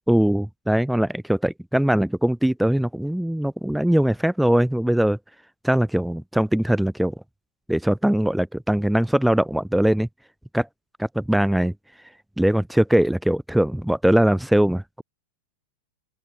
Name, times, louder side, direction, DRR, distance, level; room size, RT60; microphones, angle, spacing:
voice 1, 0.1-5.2 5.6-7.1 7.7-10.1 10.5-10.7 11.0-11.7 12.4-15.0, right 1 dB, ahead, 1.3 m, -21 dB
open air
hypercardioid pair, 120°, 0 cm